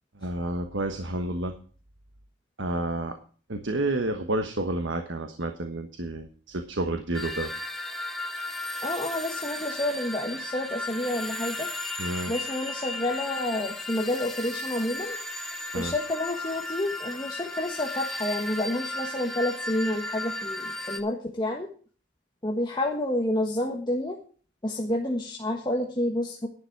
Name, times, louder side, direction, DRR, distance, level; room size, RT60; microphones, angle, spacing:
voice 1, 0.1-1.5 2.6-3.2 3.5-7.5 12.0-12.3 15.7-15.9, right 2 dB, 75° right, 6 dB, 1.3 m, -30 dB
sound 1, 7.1-21.0, left 2 dB, ahead, 1.3 m, -35 dB
voice 2, 8.8-11.7 12.3-15.2 15.7-21.7 22.4-24.2 24.6-26.5, left 1 dB, 25° left, 0 dB, 1.4 m, -29 dB
11.5 x 9.9 x 4.7 m, 0.41 s
head